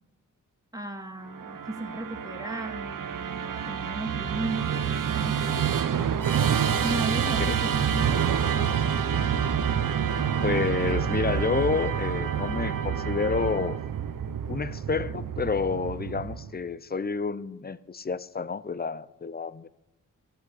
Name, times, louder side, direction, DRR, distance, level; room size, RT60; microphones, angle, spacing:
voice 1, 0.7-5.5 6.8-9.0, right 1 dB, 10° right, 2.0 m, -36 dB
Musical instrument, 1.3-16.6, right 8 dB, 80° right, 0.7 m, -28 dB
voice 2, 10.4-13.8 14.5-19.7, left 4 dB, 30° left, 0.6 m, -29 dB
14.0 x 8.0 x 8.2 m
cardioid pair, 70°, 32 cm